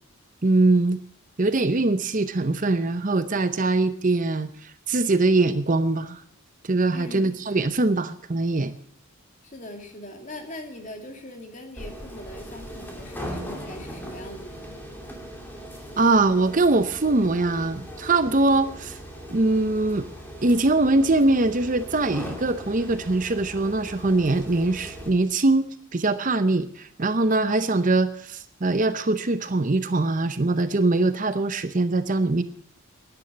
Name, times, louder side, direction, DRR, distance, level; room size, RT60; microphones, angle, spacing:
voice 1, 0.4-1.0 1.4-6.2 6.6-8.7 16.0-19.0 19.3-20.1 20.4-32.4, right 2 dB, 40° right, 12 dB, 0.7 m, -22 dB
voice 2, 6.9-7.2 9.4-14.8, left 1 dB, 35° left, 4 dB, 2.4 m, -41 dB
sound 1, 11.8-25.1, equal, 10° left, 2.5 m, -39 dB
11.5 x 9.8 x 9.7 m, 0.64 s
head